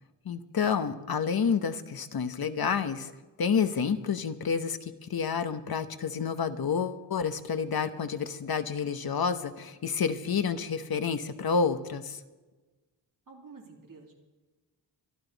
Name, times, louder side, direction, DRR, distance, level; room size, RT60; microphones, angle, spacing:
voice 1, 0.2-3.1 3.4-12.2, left 6 dB, 50° left, 10 dB, 1.0 m, -29 dB
voice 2, 13.3-14.1, right 4 dB, 45° right, 0 dB, 3.0 m, -49 dB
24.0 x 12.0 x 4.1 m, 1.2 s
wide cardioid pair, 125°, 45 cm